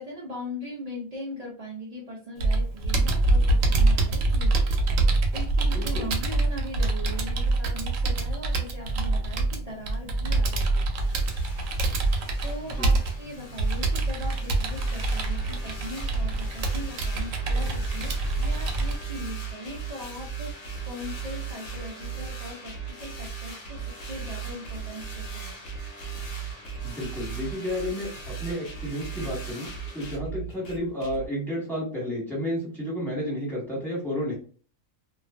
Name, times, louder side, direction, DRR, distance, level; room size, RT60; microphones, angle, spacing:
voice 1, 0.0-4.7 5.3-11.0 12.4-25.5, left 1 dB, 55° right, -4 dB, 0.4 m, -40 dB
Computer keyboard, 2.4-19.0, right 2 dB, 75° right, 0.9 m, -25 dB
voice 2, 5.7-6.1 12.7-12.9 26.8-34.4, equal, ahead, -5 dB, 1.1 m, -31 dB
sound 1, 10.9-30.2, left 1 dB, 55° left, 0.6 m, -44 dB
sound 2, 15.3-31.3, right 8 dB, 80° left, 1.0 m, -37 dB
2.4 x 2.3 x 2.3 m, 0.40 s
omnidirectional pair, 1.4 m